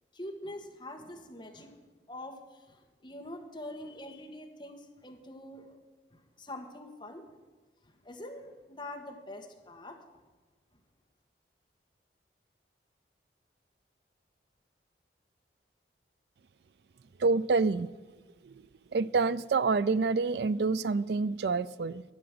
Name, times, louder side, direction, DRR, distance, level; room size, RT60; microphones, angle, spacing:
voice 1, 0.1-1.8 2.1-5.8 6.1-7.2 7.8-10.0, left 1 dB, 25° left, 3 dB, 1.5 m, -44 dB
voice 2, 17.2-17.9 18.4-18.6 18.9-22.0, right 4 dB, 70° right, 17 dB, 0.4 m, -27 dB
11.5 x 8.8 x 6.8 m, 1.3 s
head